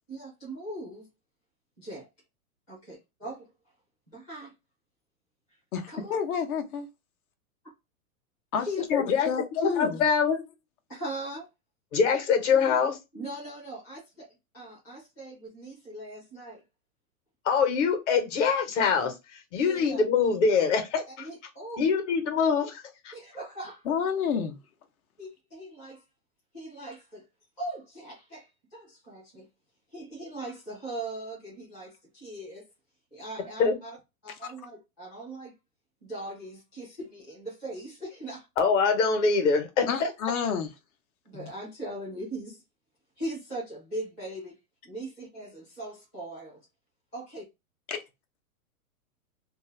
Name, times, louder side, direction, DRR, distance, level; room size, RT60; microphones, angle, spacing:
voice 1, 0.1-1.0 1.8-2.1 2.7-3.5 4.1-4.5 5.9-6.1 8.6-8.8 10.9-11.5 12.5-12.8 13.1-14.3 14.5-16.6 19.6-20.0 21.1-21.8 23.1-23.8 25.2-26.0 26.5-27.2 27.6-29.5 29.9-32.7 33.1-33.9 34.2-35.5 36.1-38.5 41.3-42.6 43.2-44.5 44.8-46.6 47.1-47.4, right 1 dB, 5° left, 0.3 m, -40 dB
voice 2, 6.1-6.9 8.5-10.0 23.9-24.6 39.9-40.7 47.9-48.0, left 7 dB, 75° left, 0.9 m, -29 dB
voice 3, 8.9-9.3 9.6-10.4 11.9-13.0 17.4-19.1 19.5-21.3 21.8-23.1 33.6-33.7 38.6-39.9, left 5 dB, 55° left, 1.1 m, -24 dB
2.6 x 2.4 x 3.2 m
supercardioid pair, 160°, 43 cm